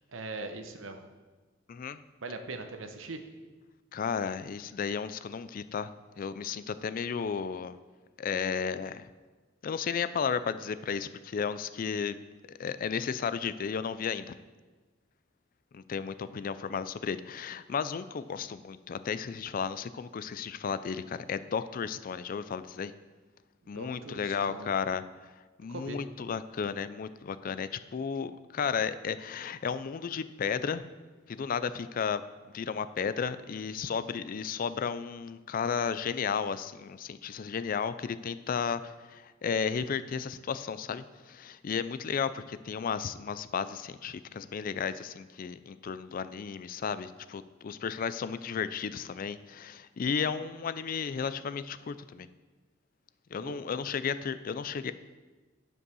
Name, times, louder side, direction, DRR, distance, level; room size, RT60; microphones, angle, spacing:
voice 1, 0.1-1.1 2.2-3.2 23.7-24.7 25.7-26.0 53.4-53.6, right 3 dB, 80° right, 6 dB, 0.9 m, -41 dB
voice 2, 1.7-2.0 3.9-5.9 6.2-7.8 8.2-9.1 9.6-12.2 12.6-14.3 15.7-22.9 23.7-25.3 25.6-30.8 31.3-32.2 32.5-52.3 53.3-54.9, left 6 dB, 45° left, 14 dB, 0.4 m, -33 dB
9.9 x 5.4 x 6.2 m, 1.3 s
head